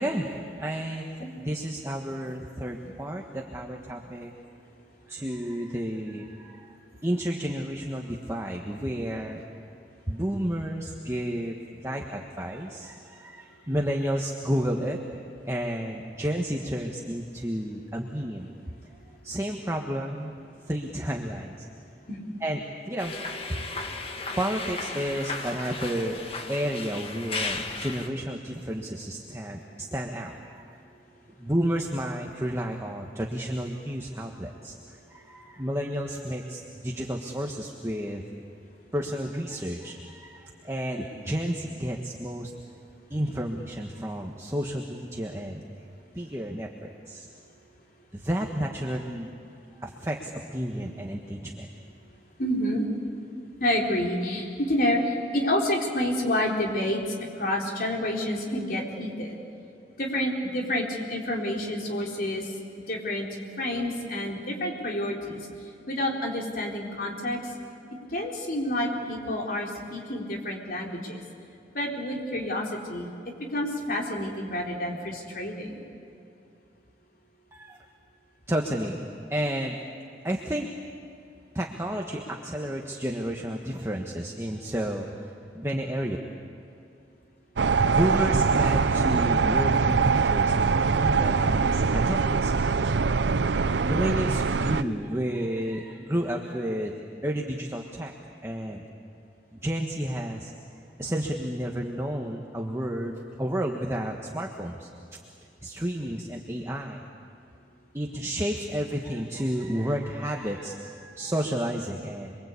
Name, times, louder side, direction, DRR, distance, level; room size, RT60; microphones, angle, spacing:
voice 1, 0.0-4.3 5.1-6.7 7.0-9.4 10.1-11.6 11.8-15.0 15.4-18.5 19.2-20.3 20.7-21.7 22.4-22.6 22.9-23.1 23.5-23.6 24.4-30.8 31.4-34.7 35.1-38.2 38.9-42.5 43.1-45.6 46.1-47.3 48.1-49.3 49.8-51.7 77.5-77.8 78.5-79.8 80.2-80.7 81.5-86.2 87.8-92.5 93.8-96.9 97.2-98.1 98.4-98.8 99.5-100.5 101.0-104.9 105.6-107.0 107.9-112.4, equal, 15° right, 0 dB, 1.4 m, -31 dB
sound 1, 23.0-28.1, left 3 dB, 30° left, 1.7 m, -35 dB
voice 2, 52.4-52.8 53.6-59.4 60.0-62.5 62.9-63.3 63.6-65.5 65.9-67.4 68.0-71.2 71.7-75.8, left 1 dB, 50° left, -1 dB, 4.1 m, -29 dB
sound 2, 87.6-94.8, right 5 dB, 75° right, 0.6 m, -23 dB
27.5 x 23.0 x 8.4 m, 2.6 s
head